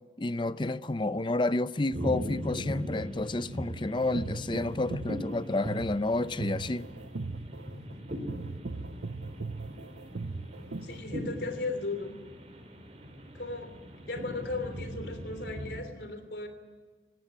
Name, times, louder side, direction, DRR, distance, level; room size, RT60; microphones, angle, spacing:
voice 1, 0.2-6.9, left 2 dB, 30° left, 0.6 m, -30 dB
sound 1, 1.9-15.8, equal, 40° right, 4.0 m, -40 dB
sound 2, 4.0-11.0, right 3 dB, 80° right, 0.7 m, -39 dB
voice 2, 10.8-12.2 13.3-13.8 14.0-16.5, left 3 dB, 75° left, 3.2 m, -36 dB
18.0 x 18.0 x 10.0 m
head